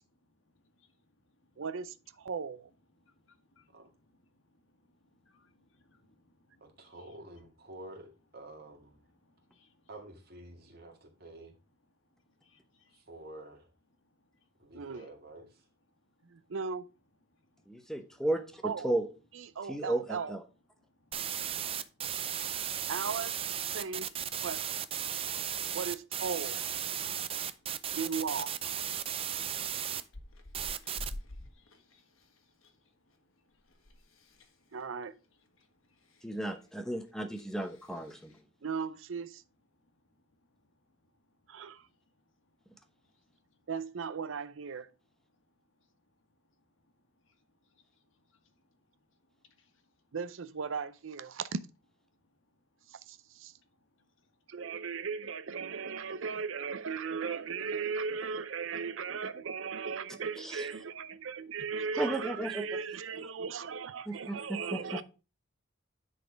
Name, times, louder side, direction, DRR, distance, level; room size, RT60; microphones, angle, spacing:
voice 1, 0.5-1.6 3.0-7.1 9.1-9.9 12.2-13.0 14.0-14.5 14.9-15.1 17.3-18.2 20.8-22.8 23.9-24.0 27.0-27.9 30.8-30.9 31.2-32.3 32.6-33.8 35.6-36.4 38.3-38.4 39.8-40.2 40.9-41.0 41.7-42.0 42.8-43.6 46.6-46.7 47.2-47.4 47.6-48.8 49.1-49.2 49.6-49.9 53.6-53.7 54.0-54.3, left 3 dB, 70° left, 1.5 m, -71 dB
voice 2, 1.6-2.7 14.7-15.0 16.2-16.9 18.6-19.0 19.3-20.3 22.9-23.4 23.7-24.1 24.4-24.6 25.7-26.6 28.0-28.5 34.7-35.1 38.6-39.4 41.5-41.9 43.7-44.9 50.1-51.6 52.9-53.5 54.5-65.0, right 5 dB, 75° right, 0.5 m, -37 dB
voice 3, 6.6-9.0 9.9-11.6 12.9-13.7 14.6-15.6, right 1 dB, 50° right, 2.1 m, -49 dB
voice 4, 17.7-19.0 19.7-20.4 36.2-38.3 60.4-60.6 62.0-62.7 64.1-64.8, right 1 dB, 5° left, 0.8 m, -34 dB
sound 1, 21.1-30.0 30.5-31.1, right 9 dB, 30° right, 0.5 m, -35 dB
Chewing mastication, 27.5-28.0 28.2-28.6 29.0-32.7 33.0-38.4, left 1 dB, 90° left, 1.5 m, -49 dB
9.9 x 4.2 x 5.1 m
head